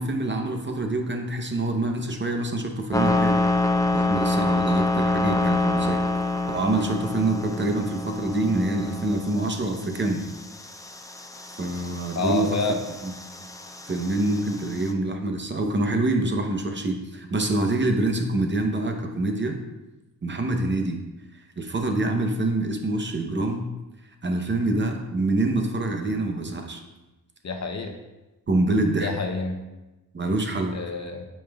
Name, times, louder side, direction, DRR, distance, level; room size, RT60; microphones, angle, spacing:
voice 1, 0.0-3.4 3.9-6.0 6.5-10.3 11.6-12.6 13.0-13.1 13.9-19.6 20.2-21.0 21.3-23.6 24.2-26.8 28.5-29.1 30.1-30.8, right 2 dB, 30° right, 3 dB, 0.7 m, -26 dB
sound 1, 2.9-14.9, left 2 dB, 10° left, 0.4 m, -27 dB
voice 2, 12.2-12.8 27.4-27.9 29.0-29.5 30.7-31.2, left 3 dB, 50° left, 4 dB, 0.7 m, -27 dB
8.4 x 5.4 x 2.3 m, 1.1 s
wide cardioid pair, 125°, 36 cm